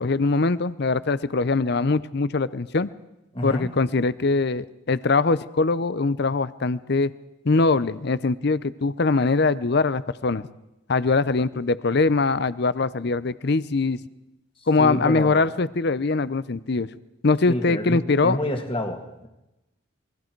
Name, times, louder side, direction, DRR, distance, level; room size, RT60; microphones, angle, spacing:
voice 1, 0.0-2.9 3.4-7.1 7.4-10.4 10.9-14.0 14.7-16.9 17.2-18.4, left 3 dB, 55° left, 16 dB, 0.6 m, -22 dB
voice 2, 3.3-3.7 14.8-15.4 17.5-19.3, left 1 dB, 25° left, 5 dB, 2.0 m, -28 dB
28.0 x 22.0 x 4.6 m, 0.93 s
head